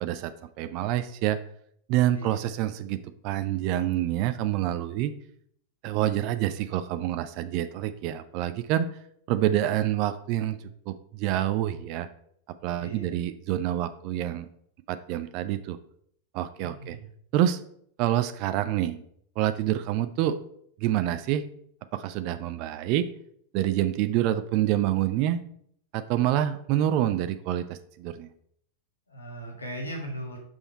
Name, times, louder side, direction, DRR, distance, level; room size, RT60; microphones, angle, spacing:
voice 1, 0.0-1.4 1.9-5.1 5.8-8.9 9.3-10.6 10.9-12.1 12.6-14.5 14.9-15.8 16.3-17.0 17.3-17.6 18.0-19.0 19.4-20.4 20.8-21.4 21.9-23.1 23.5-25.4 25.9-28.3, right 12 dB, 45° right, 12 dB, 0.4 m, -27 dB
voice 2, 12.8-13.2 16.6-17.1 29.1-30.4, right 1 dB, 80° left, 0 dB, 1.6 m, -38 dB
6.2 x 5.5 x 4.2 m, 0.67 s
figure-of-eight pair, 90°, 0 cm